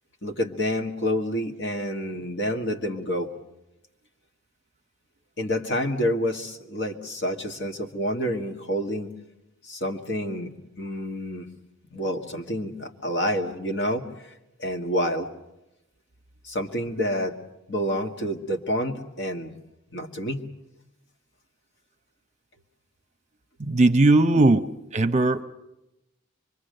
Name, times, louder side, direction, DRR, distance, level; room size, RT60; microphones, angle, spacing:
voice 1, 0.2-3.3 5.4-9.1 9.7-11.5 11.9-14.1 14.6-15.3 16.4-17.4 17.7-19.5 19.9-20.5, equal, 55° left, 3 dB, 1.8 m, -28 dB
voice 2, 23.6-25.4, right 2 dB, 35° right, 10 dB, 0.8 m, -19 dB
25.0 x 22.5 x 6.6 m, 0.91 s
head